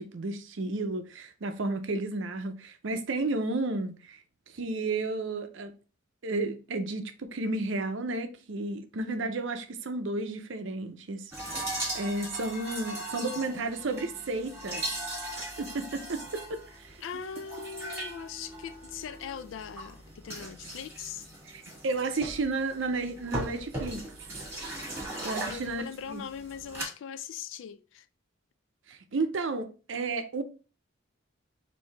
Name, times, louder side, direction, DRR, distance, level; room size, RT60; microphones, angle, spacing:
voice 1, 0.0-4.2 4.5-5.7 6.2-14.8 15.3-17.0 21.4-24.0 25.2-26.2 28.9-30.4, right 3 dB, 65° right, 0.6 m, -32 dB
voice 2, 9.0-9.4 17.0-21.3 25.5-28.1, left 7 dB, 70° left, 0.3 m, -41 dB
sound 1, 11.3-26.9, right 1 dB, 10° right, 1.6 m, -39 dB
4.5 x 2.7 x 3.3 m
head